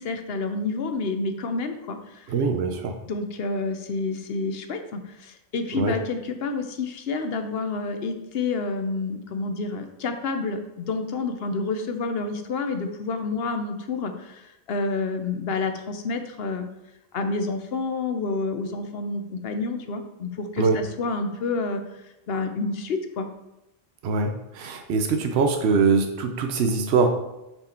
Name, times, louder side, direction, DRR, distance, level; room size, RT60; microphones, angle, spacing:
voice 1, 0.0-2.3 3.1-16.7 17.1-21.8 22.3-23.3, left 3 dB, 70° left, 7 dB, 0.9 m, -29 dB
voice 2, 2.3-2.9 5.7-6.0 20.6-20.8 24.0-27.1, right 4 dB, 80° right, 5 dB, 0.9 m, -23 dB
6.3 x 4.6 x 4.3 m, 0.93 s
omnidirectional pair, 1.1 m